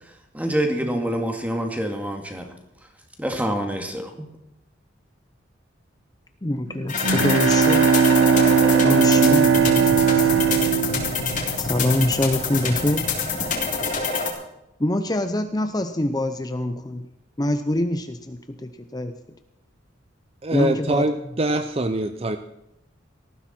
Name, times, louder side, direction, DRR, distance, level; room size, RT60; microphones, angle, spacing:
voice 1, 0.3-2.5 3.2-4.3, right 1 dB, 10° right, 3 dB, 2.0 m, -26 dB
voice 2, 6.4-8.0 8.7-10.3 11.6-13.1 14.8-17.0 17.4-19.1 20.5-21.1, left 1 dB, 20° left, 8 dB, 0.6 m, -25 dB
Bowed string instrument, 6.7-12.2, right 7 dB, 85° right, 0.9 m, -19 dB
sound 1, 6.9-14.3, left 4 dB, 40° left, 3.4 m, -26 dB
voice 3, 20.4-22.4, right 1 dB, 30° right, 9 dB, 0.6 m, -24 dB
18.5 x 14.5 x 4.4 m, 0.87 s
head